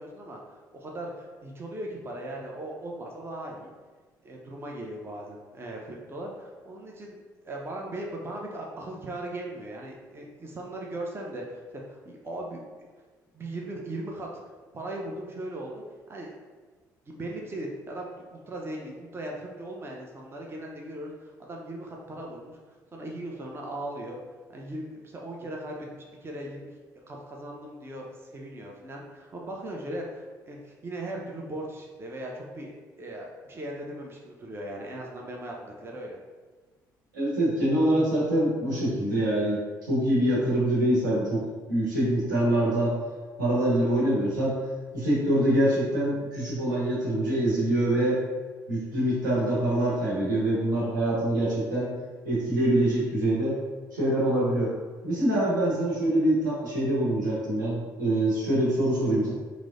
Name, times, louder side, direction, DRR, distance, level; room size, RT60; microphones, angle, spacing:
voice 1, 0.0-3.7 4.2-7.2 7.4-12.6 13.3-14.3 14.7-16.3 17.1-22.6 22.9-24.2 24.5-26.7 27.1-36.2, right 1 dB, 25° right, -1 dB, 0.5 m, -38 dB
voice 2, 37.1-43.0 43.4-44.6 44.9-48.2 48.7-51.9 52.2-53.6 53.9-54.7 55.0-59.3, right 1 dB, 80° right, -7 dB, 1.0 m, -25 dB
4.6 x 2.0 x 2.5 m, 1.4 s
figure-of-eight pair, 50°, 10 cm